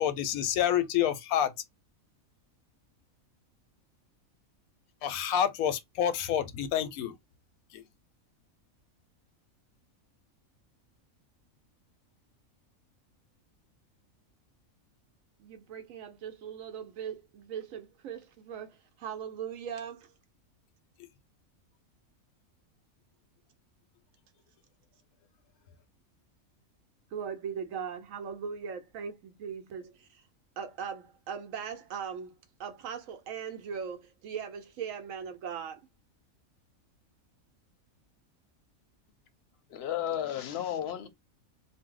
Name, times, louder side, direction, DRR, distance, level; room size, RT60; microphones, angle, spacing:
voice 1, 0.0-1.5 5.0-7.2 7.7-7.8, left 10 dB, 90° left, 1.0 m, -28 dB
voice 2, 15.4-20.1 27.1-30.2 30.6-32.3 32.6-35.9, right 7 dB, 75° right, 1.0 m, -39 dB
voice 3, 39.7-41.1, left 10 dB, 60° left, 0.7 m, -33 dB
2.6 x 2.0 x 3.6 m
omnidirectional pair, 1.5 m